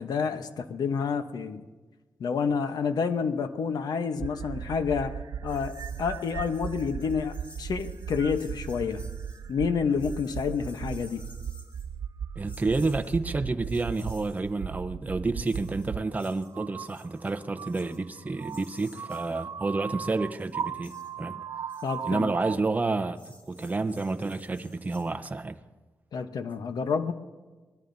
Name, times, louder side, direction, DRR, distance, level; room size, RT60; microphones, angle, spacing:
voice 1, 0.0-1.6 2.2-5.1 5.4-5.7 6.0-9.0 9.5-11.2 21.8-22.3 26.1-27.1, left 6 dB, 80° left, 1.0 m, -29 dB
sound 1, 4.2-16.0 16.5-22.6, right 7 dB, 65° right, 0.4 m, -37 dB
sound 2, 5.5-9.5 9.9-11.9 12.4-13.2 13.6-14.5 15.4-18.0 18.4-19.4 20.1-21.1 21.7-22.5 23.2-25.1, left 1 dB, 20° left, 3.1 m, -53 dB
voice 2, 12.4-21.4 22.0-25.6, right 3 dB, 25° right, 0.7 m, -30 dB
25.0 x 19.5 x 2.7 m
wide cardioid pair, 100°, 7 cm